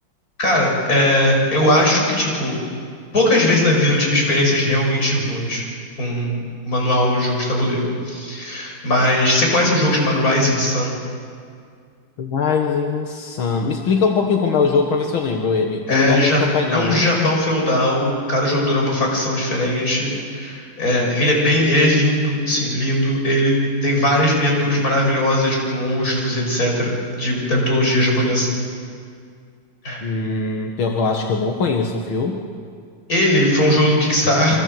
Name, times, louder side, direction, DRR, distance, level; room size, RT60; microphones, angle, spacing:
voice 1, 0.4-2.6 3.1-5.6 6.0-6.4 6.7-10.9 15.9-16.4 16.7-23.5 23.8-26.9 27.2-28.5 29.8-30.1 33.1-34.6, left 1 dB, 45° left, -1 dB, 6.8 m, -19 dB
voice 2, 12.2-17.0 30.0-32.4, left 4 dB, 85° left, 2 dB, 2.5 m, -21 dB
28.5 x 25.0 x 7.9 m, 2.2 s
omnidirectional pair, 2.2 m